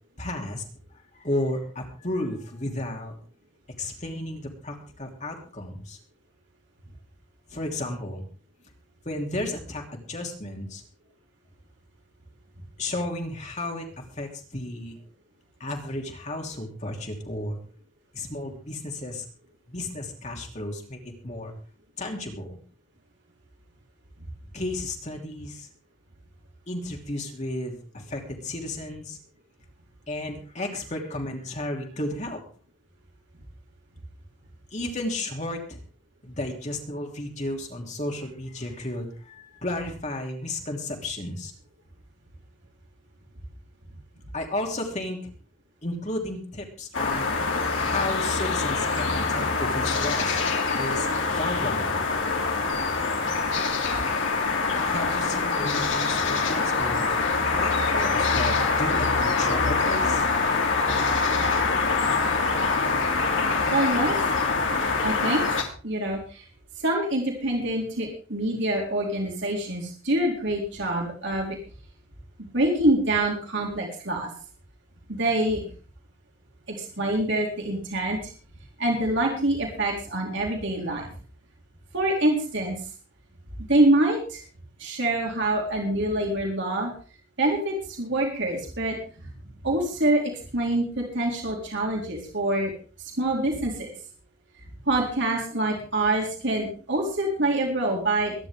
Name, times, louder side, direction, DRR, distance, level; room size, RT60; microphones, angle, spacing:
voice 1, 0.2-0.6 0.9-3.1 3.8-6.0 7.5-8.2 9.0-10.8 12.8-15.0 15.6-17.6 18.1-19.2 19.7-21.5 22.0-22.6 24.5-25.7 26.7-29.2 30.1-32.4 34.7-35.8 36.2-41.5 44.3-45.2 45.8-50.4 50.8-52.0 54.8-57.1 57.5-60.3, left 1 dB, 35° left, 1 dB, 3.1 m, -33 dB
sound 1, 46.9-65.6, left 4 dB, 60° left, 3.1 m, -24 dB
voice 2, 63.7-64.1 65.0-65.4 65.8-66.4 66.8-71.6 72.5-74.3 75.1-75.6 76.7-78.2 78.8-81.1 81.9-82.8 83.7-84.4 84.8-86.9 87.4-89.0 89.6-90.2 90.5-92.7 93.2-93.9 94.9-98.3, right 1 dB, 60° right, -1 dB, 4.1 m, -25 dB
23.0 x 10.5 x 3.6 m, 0.39 s
head